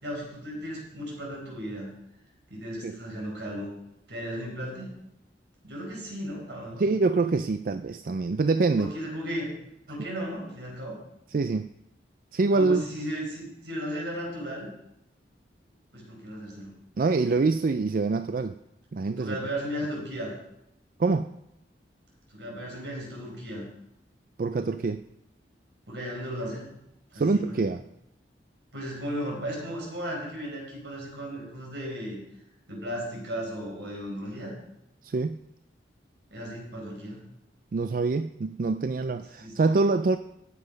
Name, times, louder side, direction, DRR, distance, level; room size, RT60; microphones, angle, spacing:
voice 1, 0.0-1.9 2.5-3.7 4.1-4.9 5.6-6.8 8.8-9.5 9.9-11.0 12.5-14.7 15.9-16.7 19.2-20.3 22.3-23.7 25.9-26.7 27.1-27.6 28.7-32.2 32.7-34.5 36.3-37.2 39.4-39.5, equal, 80° right, -1 dB, 4.8 m, -35 dB
voice 2, 6.8-8.9 11.3-11.7 12.3-12.8 17.0-18.6 18.9-19.4 21.0-21.3 24.4-25.0 27.1-27.8 35.0-35.4 37.7-40.2, right 3 dB, 50° right, 11 dB, 0.4 m, -25 dB
14.5 x 7.7 x 5.2 m, 0.85 s
head